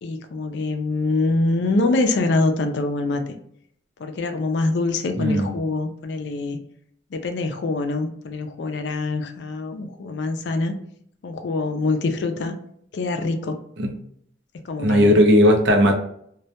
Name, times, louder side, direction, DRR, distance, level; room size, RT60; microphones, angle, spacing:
voice 1, 0.0-3.3 4.0-6.6 7.1-10.7 11.2-12.5 12.9-13.6 14.7-15.2, left 2 dB, 70° left, 6 dB, 0.4 m, -24 dB
voice 2, 5.2-5.5 13.8-13.9 14.8-15.9, equal, 80° right, 3 dB, 0.5 m, -16 dB
2.2 x 2.1 x 2.7 m, 0.66 s
head